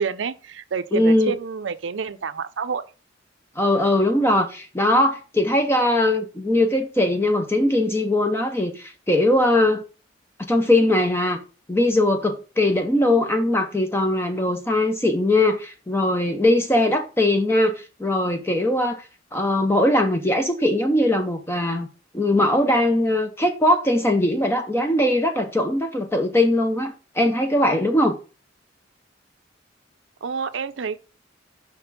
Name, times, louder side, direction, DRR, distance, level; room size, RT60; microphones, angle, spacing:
voice 1, 0.0-2.8 30.2-31.0, right 6 dB, 75° right, 0.6 m, -28 dB
voice 2, 0.9-1.3 3.6-9.8 10.5-11.4 11.7-19.0 19.3-21.9 22.1-28.1, left 1 dB, 15° left, 0.6 m, -20 dB
5.9 x 4.3 x 4.0 m
head